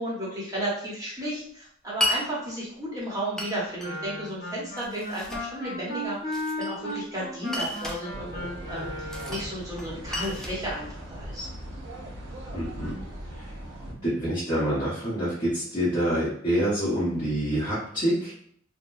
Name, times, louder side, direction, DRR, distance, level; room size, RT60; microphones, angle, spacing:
voice 1, 0.0-11.5, right 1 dB, 20° right, -6 dB, 1.1 m, -33 dB
Glass, 2.0-2.2 3.4-3.9 4.8-5.5 6.3-7.0 7.5-8.0 9.1-9.5 9.8-11.4, left 1 dB, 5° left, 0.4 m, -32 dB
Wind instrument woodwind instrument, 3.8-9.5, left 1 dB, 60° left, 1.5 m, -35 dB
sound 1, 8.1-13.9, right 1 dB, 75° right, 0.7 m, -40 dB
voice 2, 12.5-12.9 13.8-18.3, equal, 25° left, -12 dB, 1.1 m, -26 dB
3.5 x 2.2 x 2.6 m, 0.64 s
head